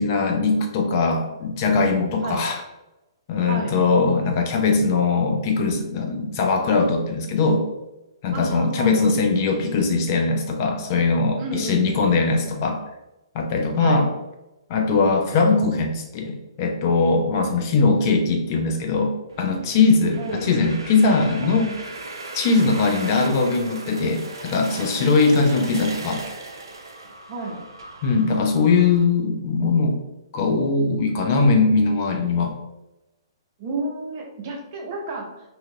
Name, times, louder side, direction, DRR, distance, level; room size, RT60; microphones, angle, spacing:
voice 1, 0.0-2.6 3.3-7.6 8.2-12.8 13.3-14.1 14.7-21.8 22.3-26.2 28.0-30.0 30.3-32.6, left 4 dB, 40° left, 3 dB, 0.4 m, -20 dB
voice 2, 8.3-9.1 11.4-12.1 13.8-14.0 17.3-17.5 20.2-20.5 21.4-21.6 25.4-25.7 27.3-27.6 33.6-35.4, right 2 dB, 40° right, -1 dB, 0.8 m, -31 dB
sound 1, 19.3-29.0, right 2 dB, 70° right, 0.5 m, -37 dB
2.7 x 2.4 x 2.8 m, 0.97 s
figure-of-eight pair, 120°, 2 cm